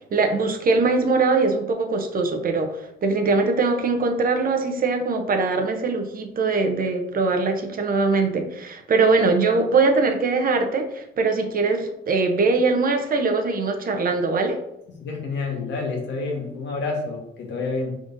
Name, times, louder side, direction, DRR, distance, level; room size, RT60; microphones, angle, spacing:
voice 1, 0.1-14.6, right 3 dB, 45° right, 5 dB, 0.7 m, -22 dB
voice 2, 14.9-18.0, left 3 dB, 65° left, -1 dB, 1.3 m, -29 dB
5.0 x 3.7 x 2.6 m, 0.83 s
cardioid pair, 90°, 20 cm